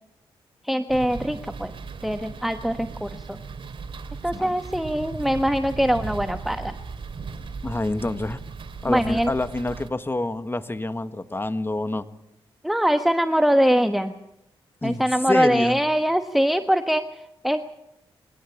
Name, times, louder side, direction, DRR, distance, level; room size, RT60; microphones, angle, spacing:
voice 1, 0.6-1.7 2.0-3.4 4.2-6.7 8.9-9.3 12.6-14.1 14.8-17.6, equal, ahead, 8 dB, 1.2 m, -23 dB
sound 1, 0.9-9.9, right 4 dB, 60° right, 3.1 m, -37 dB
voice 2, 7.6-8.4 8.8-12.1 14.8-15.8, left 2 dB, 20° left, 11 dB, 1.6 m, -27 dB
23.0 x 17.0 x 8.5 m, 0.82 s
supercardioid pair, 55°, 10 cm